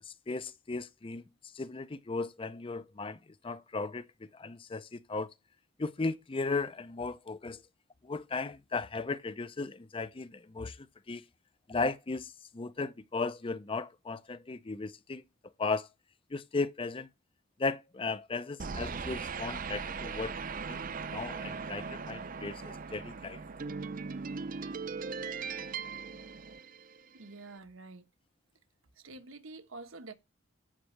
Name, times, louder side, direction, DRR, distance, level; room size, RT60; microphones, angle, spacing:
voice 1, 0.1-1.2 1.5-5.3 5.8-7.6 8.0-11.2 11.7-15.2 15.6-15.9 16.3-17.1 17.6-20.4 20.7-20.8 21.1-23.4, left 3 dB, 25° left, 0.5 m, -36 dB
sound 1, 18.6-27.1, right 5 dB, 45° right, 0.6 m, -39 dB
voice 2, 27.1-28.1 29.0-30.1, right 3 dB, 85° right, 1.3 m, -47 dB
15.0 x 6.2 x 3.3 m
head